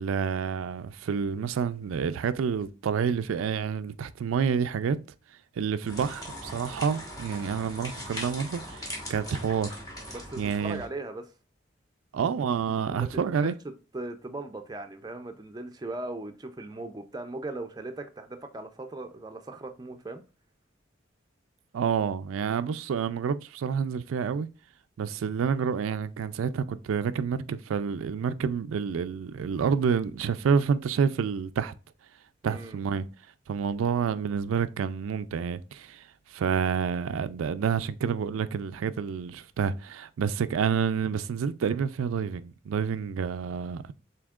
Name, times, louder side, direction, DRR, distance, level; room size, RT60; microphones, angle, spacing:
voice 1, 0.0-5.0 5.6-9.7 10.4-10.8 12.1-13.5 21.7-24.5 25.0-31.7 32.4-33.1 33.5-43.9, right 6 dB, 85° right, 0.3 m, -28 dB
sound 1, 5.8-10.9, equal, 20° left, 1.3 m, -40 dB
voice 2, 10.1-11.3 12.9-20.2 32.4-32.8, right 2 dB, 20° right, 0.4 m, -39 dB
7.1 x 2.8 x 2.4 m
head